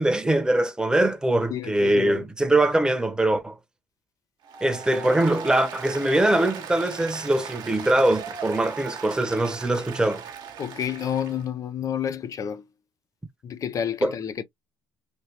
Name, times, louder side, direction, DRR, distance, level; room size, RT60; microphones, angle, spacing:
voice 1, 0.0-3.6 4.6-10.2 14.0-14.1, right 1 dB, 10° right, 1.0 m, -22 dB
voice 2, 1.5-2.2 10.6-12.6 13.4-14.4, left 8 dB, 45° left, 0.6 m, -30 dB
Applause, 4.4-11.5, right 7 dB, 60° right, 1.1 m, -38 dB
3.3 x 2.7 x 2.9 m
supercardioid pair, 90°, 8 cm